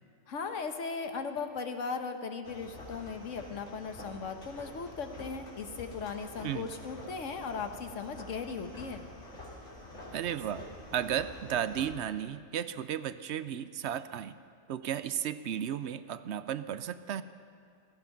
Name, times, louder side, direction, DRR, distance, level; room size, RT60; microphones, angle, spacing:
voice 1, 0.3-9.0, left 5 dB, 90° left, 7 dB, 1.4 m, -38 dB
sound 1, 2.4-11.9, left 1 dB, 75° left, 2.8 m, -47 dB
voice 2, 10.1-10.6 10.9-14.3 14.7-17.2, right 9 dB, 70° right, 13 dB, 0.8 m, -34 dB
16.0 x 14.5 x 5.8 m, 2.4 s
omnidirectional pair, 1.2 m